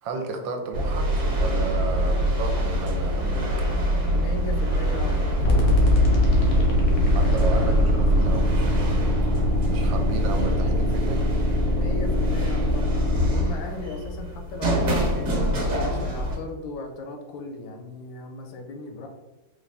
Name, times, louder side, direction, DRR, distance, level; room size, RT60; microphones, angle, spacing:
voice 1, 0.0-3.7 7.1-11.2, right 3 dB, 80° right, 4 dB, 1.3 m, -33 dB
sound 1, 0.7-16.4, equal, 40° right, 1.0 m, -25 dB
voice 2, 4.1-5.7 11.7-15.4 15.8-19.1, left 3 dB, 80° left, 3 dB, 1.4 m, -37 dB
Thunder, 4.5-7.9, left 1 dB, 15° right, 0.4 m, -43 dB
sound 2, 5.4-13.4, left 1 dB, 55° left, 0.7 m, -22 dB
4.1 x 2.5 x 3.3 m, 1.2 s
omnidirectional pair, 2.2 m